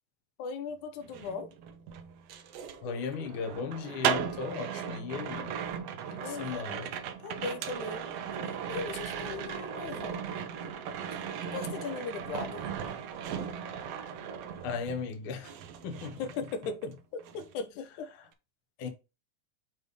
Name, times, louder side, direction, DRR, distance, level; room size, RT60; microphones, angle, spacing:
voice 1, 0.4-1.5 6.1-6.7 7.2-8.1 8.4-10.2 11.1-11.2 11.5-12.6 16.2-18.1, left 5 dB, 80° left, 2.3 m, -38 dB
sound 1, 1.0-15.1 15.4-16.9 17.2-17.5, right 8 dB, 75° right, 1.6 m, -37 dB
voice 2, 2.8-5.5 6.1-6.9 14.6-15.5 15.8-16.2 18.8-18.9, left 5 dB, 60° left, 1.6 m, -36 dB
6.7 x 3.4 x 5.0 m
omnidirectional pair, 3.4 m